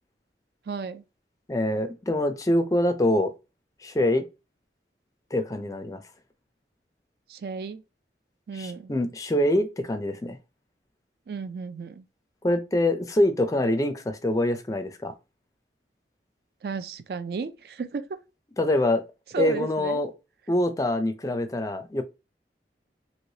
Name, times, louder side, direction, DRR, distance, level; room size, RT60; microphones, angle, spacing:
voice 1, 0.7-1.0 7.3-7.8 8.5-8.9 11.3-12.1 16.6-18.1 19.3-20.0, right 5 dB, 60° right, 0.4 m, -33 dB
voice 2, 1.5-3.3 3.8-4.2 5.3-6.0 8.5-10.4 12.4-15.1 18.6-19.0 19.4-20.1 20.5-22.0, left 1 dB, 20° left, 0.4 m, -25 dB
3.2 x 2.9 x 2.7 m
head